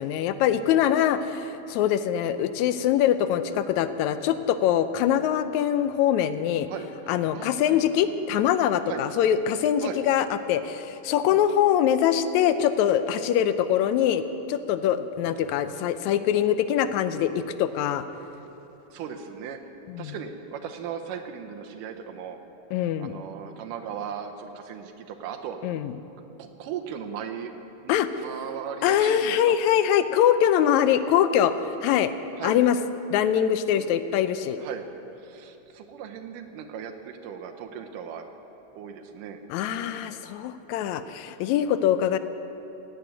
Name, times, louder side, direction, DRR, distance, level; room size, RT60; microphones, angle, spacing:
voice 1, 0.0-6.7 7.1-14.2 14.5-18.0 19.9-20.2 22.7-23.1 25.6-25.9 27.9-28.1 28.8-31.5 31.8-32.1 32.4-32.8 33.1-34.6 39.5-42.2, left 10 dB, 80° left, 12 dB, 1.8 m, -23 dB
voice 2, 7.3-7.8 8.9-9.0 9.8-10.0 11.3-11.4 18.9-19.6 20.0-22.4 22.7-25.7 26.4-27.5 27.8-29.6 32.4-32.6 33.8-34.0 34.6-34.8 35.2-38.3 38.7-39.4 39.8-40.2, right 8 dB, 90° right, 5 dB, 2.4 m, -37 dB
16.5 x 9.3 x 9.0 m, 2.9 s
omnidirectional pair, 3.7 m